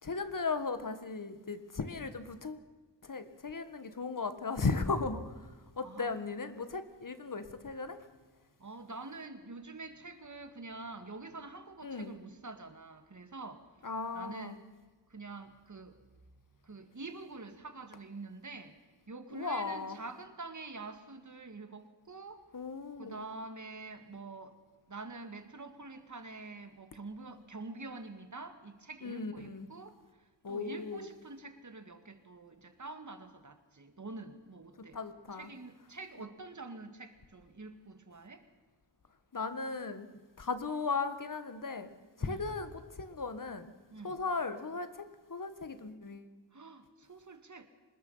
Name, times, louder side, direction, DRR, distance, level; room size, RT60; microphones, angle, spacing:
voice 1, 0.0-2.6 3.0-8.0 11.8-12.1 13.8-14.6 19.3-20.0 22.5-23.2 29.0-29.7 30.4-31.1 34.8-35.5 39.3-40.1 40.4-41.9 42.2-43.7 44.0-46.3, left 4 dB, 45° left, 11 dB, 1.7 m, -37 dB
voice 2, 8.6-13.7 14.1-14.6 15.1-16.0 16.6-18.8 19.1-22.5 23.0-24.6 24.9-35.0 35.3-38.5 42.2-42.5 43.9-44.2 46.5-47.7, right 3 dB, 40° right, 9 dB, 2.1 m, -46 dB
25.5 x 20.5 x 5.7 m, 1.3 s
wide cardioid pair, 120°, 43 cm